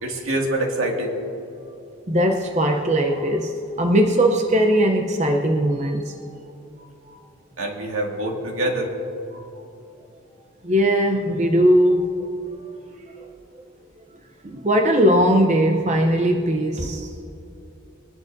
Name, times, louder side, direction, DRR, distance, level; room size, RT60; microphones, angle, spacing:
voice 1, 0.0-1.2 7.6-8.9, right 1 dB, 85° right, 0 dB, 2.2 m, -25 dB
voice 2, 2.1-3.5 3.8-6.2 7.1-7.2 9.3-9.4 10.6-12.3 12.7-12.8 13.2-13.3 14.4-17.1, equal, 35° right, 3 dB, 0.7 m, -19 dB
22.0 x 11.0 x 2.7 m, 2.8 s
head